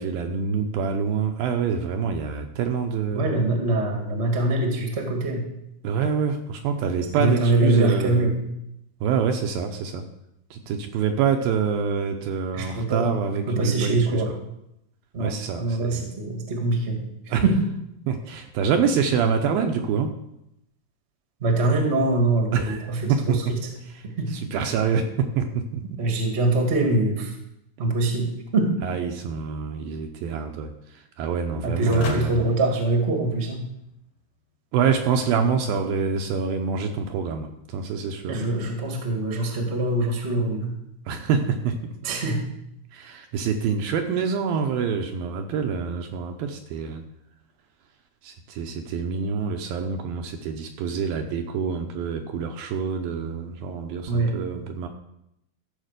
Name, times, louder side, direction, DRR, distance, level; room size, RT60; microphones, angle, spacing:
voice 1, 0.0-3.3 5.8-8.3 9.0-10.0 10.5-14.2 15.2-16.1 17.3-17.4 18.1-20.1 22.5-23.4 24.0-24.1 24.3-25.8 28.8-30.7 31.2-32.4 34.7-38.4 41.1-41.8 42.9-47.0 48.2-54.9, right 6 dB, 75° right, 4 dB, 2.3 m, -26 dB
voice 2, 3.1-5.4 7.1-8.3 12.5-13.0 13.5-14.3 15.1-17.0 17.4-17.6 21.4-23.6 24.2-24.3 26.0-27.3 27.8-28.7 31.6-33.6 38.3-40.7 42.0-42.4 54.1-54.3, right 2 dB, 35° right, 2 dB, 1.1 m, -23 dB
sound 1, 31.9-33.9, left 4 dB, 55° left, 3.3 m, -36 dB
14.0 x 5.1 x 6.6 m, 0.82 s
omnidirectional pair, 4.6 m